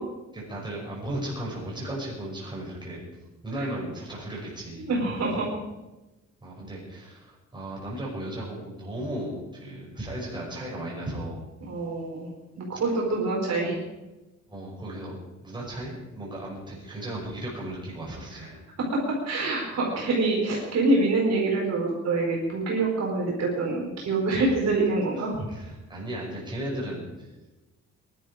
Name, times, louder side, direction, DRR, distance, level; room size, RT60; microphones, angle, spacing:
voice 1, 0.3-3.0 3.4-4.9 6.4-11.4 14.5-18.6 25.2-27.3, right 1 dB, 15° right, -4 dB, 5.9 m, -35 dB
voice 2, 4.8-5.5 11.6-12.3 12.6-13.8 18.3-18.5 18.9-19.0 19.2-25.5, right 2 dB, 60° right, -2 dB, 4.5 m, -26 dB
22.5 x 12.0 x 5.0 m, 1.1 s
wide cardioid pair, 165°, 30 cm